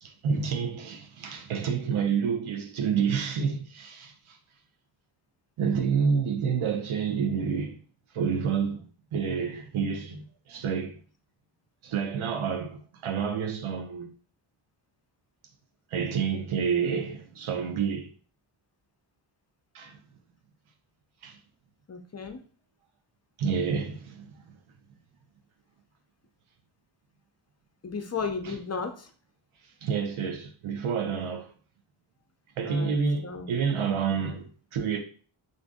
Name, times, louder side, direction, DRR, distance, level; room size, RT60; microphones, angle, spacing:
voice 1, 0.0-4.4 5.6-7.8 8.1-8.8 9.1-11.0 11.8-14.1 15.9-18.1 19.7-20.0 21.2-21.4 23.4-24.3 28.4-28.6 29.8-31.5 32.6-35.0, right 6 dB, 85° right, 0.7 m, -29 dB
voice 2, 21.9-22.4 27.8-29.1 32.6-33.5, left 5 dB, 35° left, 0.5 m, -34 dB
2.6 x 2.5 x 3.5 m
cardioid pair, 65°, 48 cm